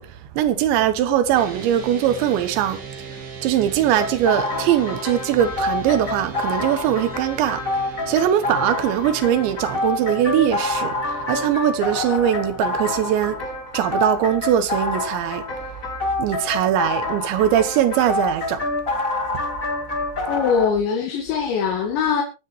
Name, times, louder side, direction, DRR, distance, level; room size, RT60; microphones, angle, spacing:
voice 1, 0.0-13.5 13.7-15.7 16.2-18.7, right 11 dB, 85° right, 3.5 m, -21 dB
sound 1, 1.3-13.5, right 5 dB, 45° right, 1.3 m, -39 dB
sound 2, 4.0-20.7, left 2 dB, 40° left, 1.1 m, -27 dB
voice 2, 20.3-22.2, left 6 dB, 80° left, 4.1 m, -22 dB
23.5 x 8.8 x 3.1 m
omnidirectional pair, 5.1 m